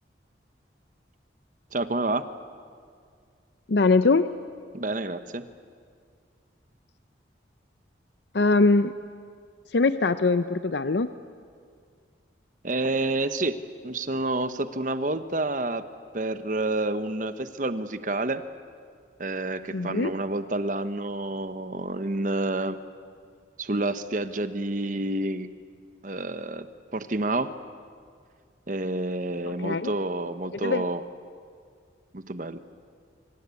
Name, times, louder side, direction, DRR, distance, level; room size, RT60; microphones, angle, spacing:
voice 1, 1.7-2.2 4.7-5.4 12.6-13.6 13.8-15.8 16.1-18.4 19.2-22.8 23.6-25.5 26.0-26.7 26.9-27.5 28.7-31.0 32.1-32.6, right 2 dB, 45° right, 11 dB, 1.0 m, -29 dB
voice 2, 3.7-4.3 8.3-8.9 9.7-11.1 19.7-20.1 29.5-29.9 30.6-30.9, left 3 dB, 65° left, 12 dB, 0.6 m, -22 dB
25.5 x 25.0 x 8.4 m, 2.2 s
head